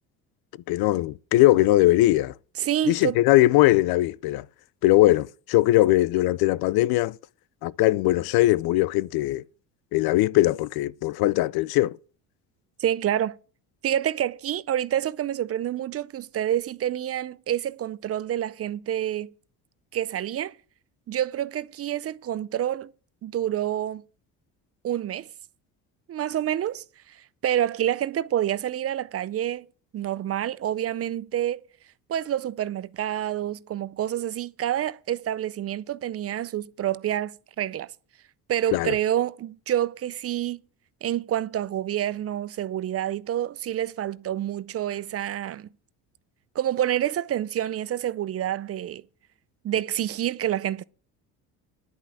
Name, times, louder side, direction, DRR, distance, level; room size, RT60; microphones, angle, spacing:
voice 1, 0.7-2.3 2.9-4.4 4.8-7.2 7.6-9.4 9.9-12.0 38.7-38.9, left 17 dB, 70° left, 0.5 m, -20 dB
voice 2, 2.6-3.2 12.8-13.4 13.8-19.3 19.9-20.5 21.1-22.9 23.2-24.0 24.8-25.3 26.1-27.2 27.4-29.7 29.9-31.6 32.1-37.9 38.5-40.6 41.0-45.7 46.6-49.0 49.6-50.8, right 11 dB, 40° right, 0.5 m, -28 dB
10.5 x 5.8 x 8.4 m
supercardioid pair, 90°, 38 cm